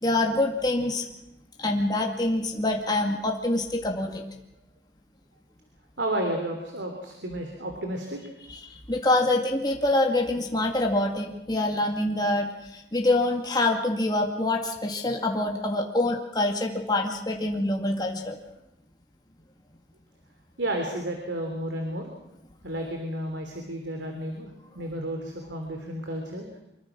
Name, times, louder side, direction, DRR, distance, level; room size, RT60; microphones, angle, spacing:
voice 1, 0.0-1.0 1.6-4.2 8.7-18.4, left 2 dB, 25° left, 1 dB, 2.2 m, -25 dB
voice 2, 6.0-8.2 20.6-22.1 22.6-26.5, right 1 dB, 80° right, 3 dB, 3.3 m, -32 dB
25.0 x 23.0 x 6.1 m, 0.86 s
head